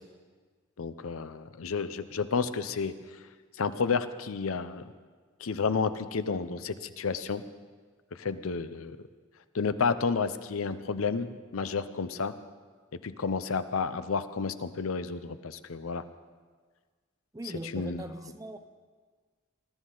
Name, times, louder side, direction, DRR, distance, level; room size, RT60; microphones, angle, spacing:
voice 1, 0.8-3.0 3.6-4.8 5.4-7.4 8.1-9.0 9.5-12.3 13.0-16.0 17.7-18.0, left 5 dB, 90° left, 0.7 m, -31 dB
voice 2, 17.3-18.6, right 1 dB, 15° right, 0.7 m, -40 dB
20.5 x 13.0 x 3.9 m
head